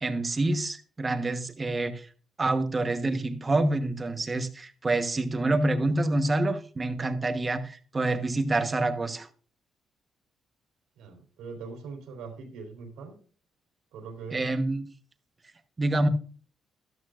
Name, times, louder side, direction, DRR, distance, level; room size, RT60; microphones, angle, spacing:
voice 1, 0.0-2.1 2.4-9.3 14.3-14.9 15.8-16.1, right 2 dB, 25° right, 1.2 m, -27 dB
voice 2, 11.0-13.2 13.9-14.5, right 4 dB, 90° right, 3.3 m, -41 dB
12.5 x 12.0 x 2.5 m
cardioid pair, 90°, 0 cm